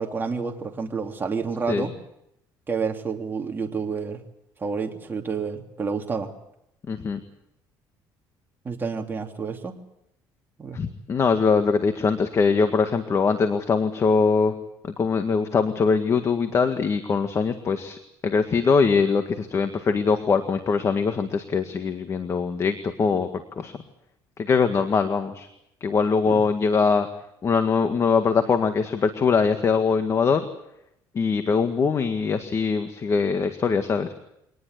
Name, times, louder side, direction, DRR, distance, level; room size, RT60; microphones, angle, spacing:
voice 1, 0.0-1.9 2.7-4.2 4.6-6.3 8.6-9.8 10.6-10.8 26.3-26.4, right 5 dB, 25° right, 2 dB, 3.0 m, -29 dB
voice 2, 6.9-7.2 10.7-14.5 14.8-18.0 18.2-23.3 23.6-23.7 24.4-25.5 25.8-27.1 27.4-30.4 31.2-34.1, left 5 dB, 35° left, 8 dB, 1.8 m, -22 dB
24.0 x 19.0 x 8.1 m, 0.81 s
cardioid pair, 100°, 8 cm